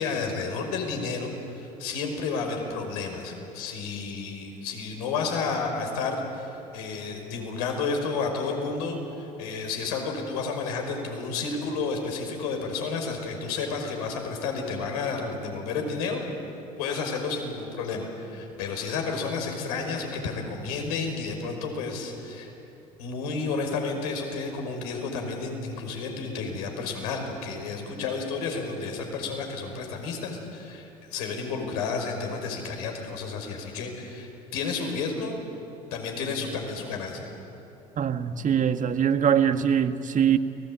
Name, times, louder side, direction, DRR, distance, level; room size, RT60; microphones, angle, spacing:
voice 1, 0.0-16.2 16.8-22.5 23.0-35.4 35.9-37.3, left 4 dB, 75° left, 3 dB, 5.6 m, -31 dB
voice 2, 38.0-40.4, right 8 dB, 40° right, 9 dB, 1.8 m, -23 dB
30.0 x 20.5 x 8.9 m, 2.9 s
hypercardioid pair, 65°, 20 cm